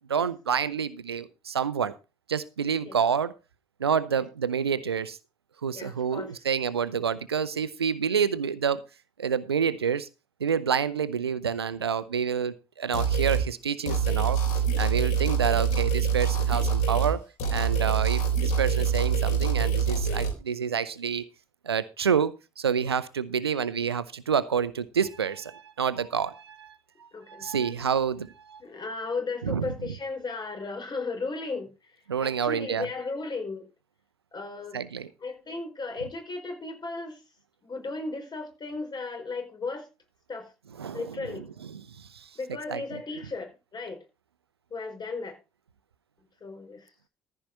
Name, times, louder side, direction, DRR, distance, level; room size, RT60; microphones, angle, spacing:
voice 1, 0.1-1.9 2.3-3.3 3.8-5.2 5.6-8.8 9.2-10.1 10.4-21.2 21.6-26.7 27.0-28.6 29.4-29.7 32.1-32.9 34.7-35.1 40.8-41.2 41.7-42.3 42.7-42.8, right 7 dB, 85° right, 17 dB, 0.6 m, -28 dB
voice 2, 5.7-6.4 27.1-27.5 28.6-33.7 34.3-34.8 35.2-37.2 37.6-39.9 40.3-40.5 40.9-41.5 42.3-44.0 44.7-45.4 46.4-46.9, left 3 dB, 35° left, 5 dB, 4.7 m, -35 dB
sound 1, 12.9-13.5 13.9-17.1 17.4-20.3, right 6 dB, 65° left, 3.7 m, -25 dB
14.5 x 5.6 x 6.0 m, 0.29 s
figure-of-eight pair, 50°, 13 cm